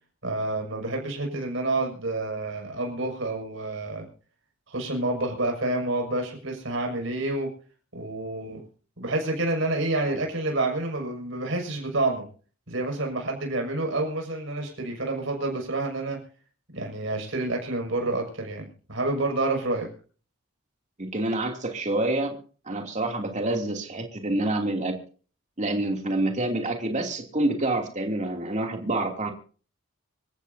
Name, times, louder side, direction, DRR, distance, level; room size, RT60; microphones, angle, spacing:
voice 1, 0.2-4.1 4.7-7.5 7.9-8.6 9.0-12.2 12.7-16.2 16.7-19.9, right 2 dB, 65° right, 2 dB, 6.2 m, -28 dB
voice 2, 21.0-22.4 22.7-24.9 25.6-29.3, right 2 dB, 35° right, 2 dB, 2.8 m, -27 dB
26.5 x 14.5 x 2.8 m, 0.41 s
head